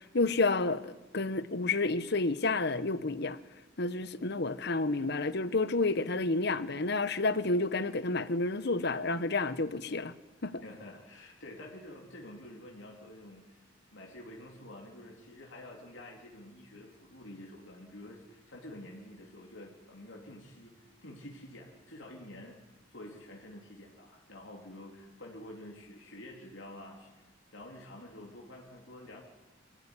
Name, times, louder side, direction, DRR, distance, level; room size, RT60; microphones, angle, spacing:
voice 1, 0.0-3.4 3.8-10.1 10.4-10.6, left 3 dB, 60° left, 1.1 m, -30 dB
voice 2, 10.6-27.3 27.5-29.2, left 1 dB, 80° left, 3.7 m, -49 dB
25.0 x 15.5 x 9.9 m
head